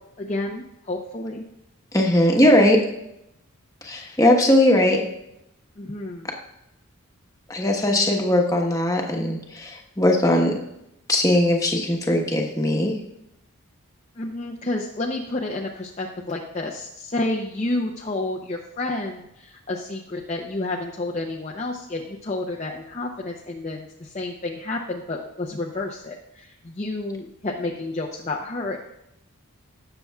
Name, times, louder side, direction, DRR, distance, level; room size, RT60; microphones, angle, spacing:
voice 1, 0.2-1.4 5.8-6.3 14.2-28.8, left 2 dB, 30° left, -2 dB, 0.7 m, -30 dB
voice 2, 1.9-2.8 3.8-5.0 7.5-10.6 11.1-12.9, left 1 dB, 15° left, 1 dB, 1.2 m, -19 dB
18.5 x 6.8 x 2.3 m, 0.84 s
head